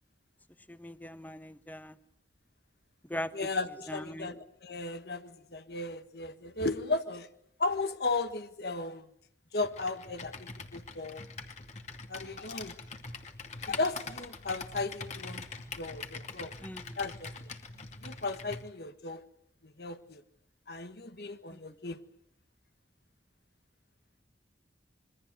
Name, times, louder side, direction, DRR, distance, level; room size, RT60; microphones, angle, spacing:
voice 1, 0.7-1.9 3.1-3.3 3.9-4.3 16.6-17.0 21.5-21.6, left 1 dB, 10° left, 11 dB, 1.2 m, -40 dB
voice 2, 3.3-7.3 7.6-9.0 9.5-11.2 12.1-12.7 13.7-15.5 15.8-16.5 17.0-17.3 18.0-19.2 19.6-20.2 20.7-22.0, left 3 dB, 60° left, 9 dB, 1.5 m, -35 dB
Computer keyboard, 9.6-18.7, left 4 dB, 40° left, 2.5 m, -43 dB
26.5 x 23.0 x 8.1 m, 0.73 s
head